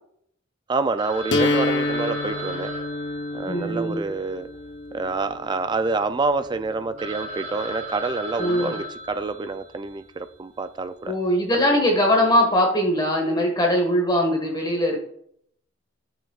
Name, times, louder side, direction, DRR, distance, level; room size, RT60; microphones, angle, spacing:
voice 1, 0.7-2.7 3.3-4.5 4.9-11.1 11.5-11.6, right 3 dB, 25° right, 11 dB, 0.3 m, -27 dB
Telephone, 1.0-5.3 5.6-5.7 6.2-6.3 6.7-6.8 7.0-9.9, right 1 dB, 40° right, 3.2 m, -36 dB
sound 1, 1.3-7.3, left 2 dB, 65° left, 0.9 m, -29 dB
voice 2, 3.5-4.1 8.4-8.8 11.1-15.0, equal, 20° left, 1 dB, 1.5 m, -21 dB
12.0 x 6.2 x 2.4 m, 0.67 s
head